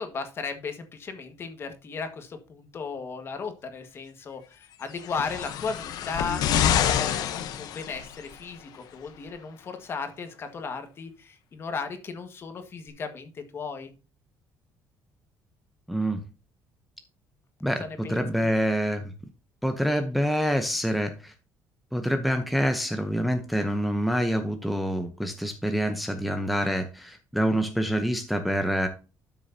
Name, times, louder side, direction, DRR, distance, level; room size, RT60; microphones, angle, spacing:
voice 1, 0.0-13.9 17.8-18.5, left 5 dB, 35° left, 7 dB, 1.6 m, -36 dB
sound 1, 5.0-8.3 9.3-9.4, left 10 dB, 70° left, 0.9 m, -27 dB
voice 2, 15.9-16.2 17.6-19.1 19.6-21.3 21.9-28.9, equal, ahead, 6 dB, 0.8 m, -26 dB
12.5 x 6.3 x 2.8 m, 0.32 s
cardioid pair, 150°, 7 cm